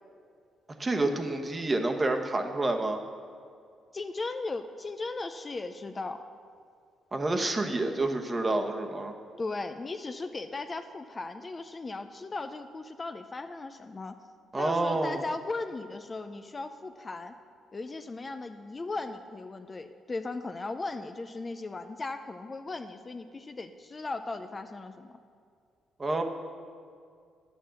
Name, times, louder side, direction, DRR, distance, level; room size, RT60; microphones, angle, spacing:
voice 1, 0.8-3.0 7.1-9.1 14.5-15.2 26.0-26.2, right 2 dB, 25° right, 5 dB, 1.1 m, -28 dB
voice 2, 3.9-6.2 9.4-14.1 14.6-17.3 17.7-25.2, left 3 dB, 30° left, 8 dB, 0.5 m, -37 dB
10.0 x 7.1 x 7.5 m, 2.3 s
cardioid pair, 90°, 0 cm